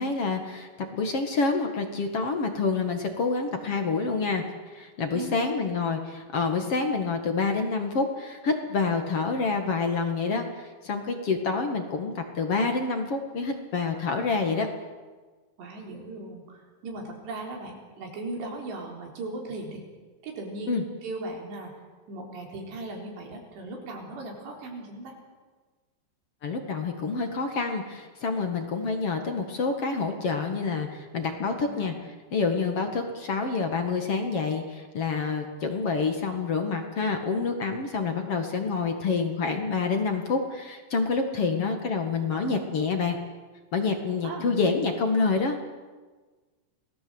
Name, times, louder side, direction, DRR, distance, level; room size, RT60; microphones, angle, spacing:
voice 1, 0.0-14.7 20.7-20.8 26.4-31.9 32.3-43.2 43.7-45.7, left 4 dB, 45° left, 5 dB, 2.1 m, -27 dB
voice 2, 5.1-5.6 15.6-19.9 20.2-20.7 21.0-21.7 22.1-25.2 31.6-31.9 41.4-41.7 42.2-42.6 44.2-44.5, right 2 dB, 80° right, 1 dB, 6.3 m, -38 dB
27.5 x 18.5 x 8.0 m, 1.4 s
omnidirectional pair, 4.9 m